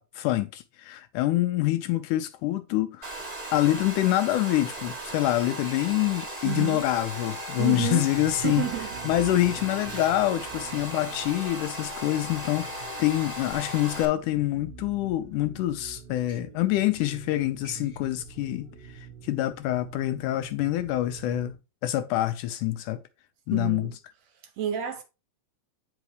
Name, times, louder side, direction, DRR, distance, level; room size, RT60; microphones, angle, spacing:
voice 1, 0.0-3.2 3.5-8.7 9.0-21.6 21.8-23.0 23.5-23.9, left 15 dB, 80° left, 1.9 m, -26 dB
Domestic sounds home sounds, 3.0-14.1, right 1 dB, 15° right, 1.5 m, -37 dB
sound 1, 5.5-5.9 6.2-6.7 7.3-7.7 8.1-8.5 11.8-12.2 13.0-13.1 14.3-14.4 16.1-16.4 17.3-17.4 17.6-18.0, left 2 dB, 40° left, 1.2 m, -51 dB
voice 2, 6.4-6.8 7.6-8.1 8.4-8.9 23.5-24.0 24.6-25.0, right 10 dB, 70° right, 1.7 m, -30 dB
sound 2, 8.1-21.5, right 6 dB, 85° right, 2.7 m, -46 dB
9.1 x 5.5 x 3.2 m
omnidirectional pair, 3.9 m